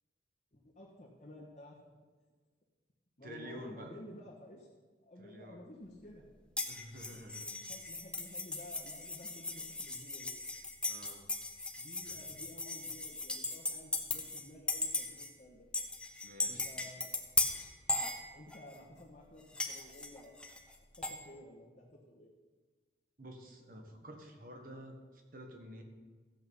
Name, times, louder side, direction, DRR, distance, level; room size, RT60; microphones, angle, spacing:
voice 1, 0.5-1.8 3.2-4.7 5.0-6.2 7.7-10.4 11.7-15.7 16.4-17.1 18.3-20.4 21.0-22.3, left 1 dB, 40° left, -5 dB, 1.6 m, -53 dB
voice 2, 3.2-4.0 5.2-5.6 6.7-7.5 10.9-11.3 12.0-12.3 16.2-16.7 23.2-25.8, equal, 50° right, 3 dB, 1.5 m, -50 dB
sound 1, 6.6-14.4 14.7-15.3 15.7-18.7 19.5-21.2, left 3 dB, 5° left, 0.8 m, -37 dB
14.5 x 8.1 x 5.7 m, 1.4 s
head